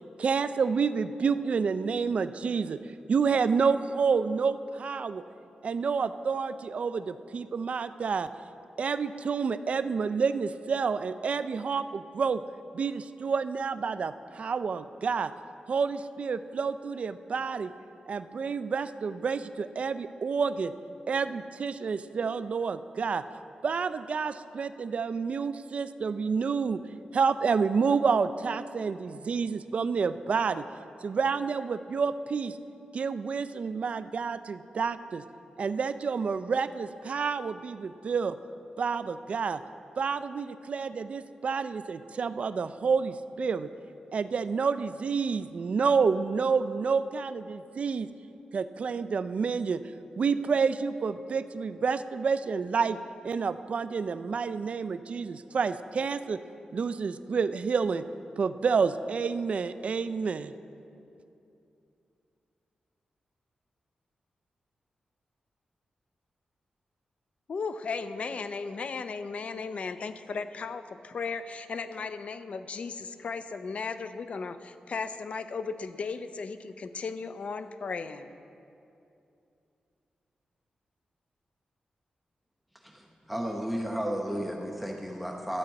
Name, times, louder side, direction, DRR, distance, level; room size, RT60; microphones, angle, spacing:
voice 1, 0.2-2.8 3.1-5.2 5.6-8.3 8.8-12.4 12.7-15.3 15.7-17.7 18.1-20.7 21.1-23.2 23.6-26.8 27.1-30.6 31.0-32.6 32.9-35.2 35.6-38.4 38.8-39.6 40.0-43.7 44.1-48.1 48.5-49.8 50.2-53.0 53.2-56.4 56.7-58.0 58.4-60.5, right 5 dB, 55° right, 12 dB, 0.3 m, -29 dB
voice 2, 67.5-78.4, left 4 dB, 55° left, 11 dB, 0.5 m, -36 dB
voice 3, 82.8-85.6, equal, ahead, 0 dB, 0.8 m, -33 dB
12.0 x 5.2 x 7.6 m, 2.7 s
wide cardioid pair, 110°, 3 cm